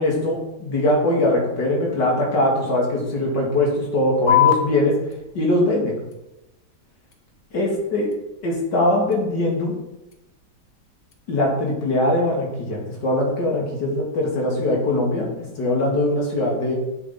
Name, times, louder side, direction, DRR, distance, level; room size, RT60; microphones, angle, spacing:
voice 1, 0.0-5.0 5.3-6.0 7.5-8.1 8.4-9.8 11.3-15.3 15.6-16.8, left 1 dB, 75° left, -1 dB, 2.7 m, -21 dB
sound 1, 4.3-11.3, left 11 dB, 60° left, 1.4 m, -28 dB
7.5 x 6.9 x 4.2 m, 0.95 s
omnidirectional pair, 1.9 m